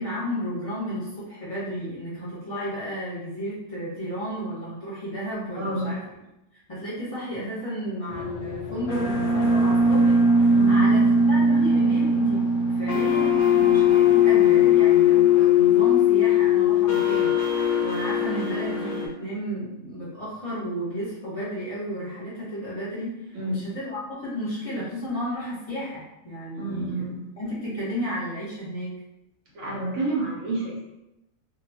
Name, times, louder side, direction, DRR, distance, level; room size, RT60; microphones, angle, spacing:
voice 1, 0.0-6.0 6.7-17.3 17.8-27.1 27.4-29.0, equal, 30° left, -11 dB, 1.0 m, -33 dB
voice 2, 5.5-6.0 10.5-10.8 23.3-23.7 26.6-27.2 29.5-30.9, right 2 dB, 70° right, -6 dB, 1.1 m, -29 dB
sound 1, 8.1-19.1, left 4 dB, 70° left, 0.9 m, -20 dB
2.7 x 2.3 x 2.7 m, 0.93 s
omnidirectional pair, 1.4 m